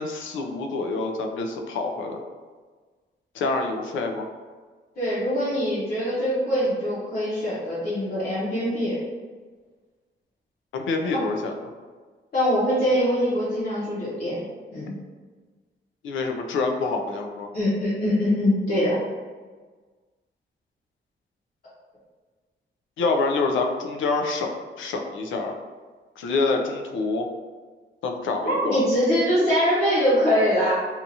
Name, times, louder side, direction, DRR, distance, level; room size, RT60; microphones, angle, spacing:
voice 1, 0.0-2.2 3.3-4.3 10.7-11.5 16.0-17.5 23.0-25.5 26.2-27.3 28.0-28.8, left 3 dB, 85° left, 4 dB, 0.4 m, -26 dB
voice 2, 5.0-8.9 12.3-14.4 14.7-14.9 17.5-19.0 28.4-30.7, equal, 50° left, -10 dB, 0.8 m, -23 dB
2.8 x 2.4 x 2.6 m, 1.4 s
wide cardioid pair, 165°, 19 cm